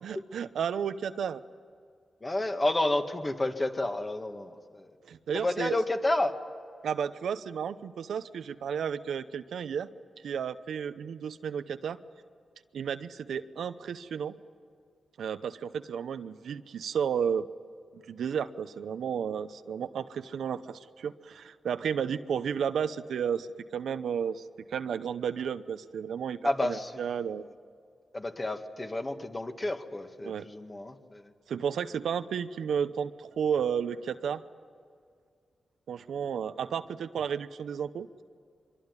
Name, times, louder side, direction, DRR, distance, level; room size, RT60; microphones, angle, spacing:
voice 1, 0.0-1.4 5.0-5.8 6.8-9.9 10.2-12.0 12.7-14.3 15.2-17.5 17.9-27.4 30.2-30.5 31.5-34.4 35.9-38.2, right 7 dB, 90° right, 11 dB, 0.8 m, -32 dB
voice 2, 2.2-4.9 5.3-6.3 26.4-26.9 28.1-31.3, left 2 dB, 25° left, 5 dB, 2.0 m, -30 dB
24.0 x 23.0 x 9.8 m, 2.1 s
cardioid pair, 80°, 0 cm